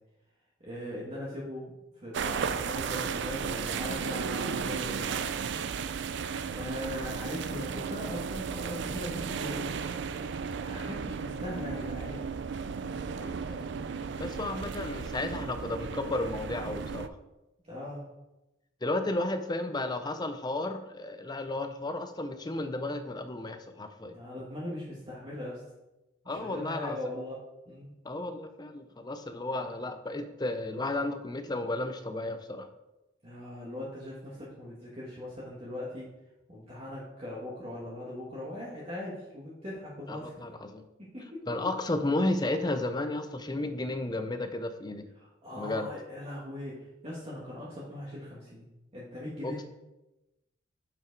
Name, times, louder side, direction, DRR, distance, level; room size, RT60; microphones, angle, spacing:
voice 1, 0.6-5.3 6.5-9.8 10.6-12.2 17.6-18.1 24.0-25.6 26.2-27.9 33.2-36.1 36.5-40.5 41.0-41.4 45.2-48.7 48.9-49.6, left 1 dB, 30° right, -6 dB, 1.5 m, -40 dB
sound 1, 2.1-17.1, right 6 dB, 60° right, 0.4 m, -34 dB
voice 2, 13.2-13.7 14.2-17.2 18.8-24.1 26.3-27.0 28.0-32.7 40.1-40.8 41.5-45.1 45.6-45.9 49.4-49.6, left 2 dB, 20° left, 8 dB, 0.6 m, -33 dB
7.0 x 6.0 x 4.6 m, 0.98 s
head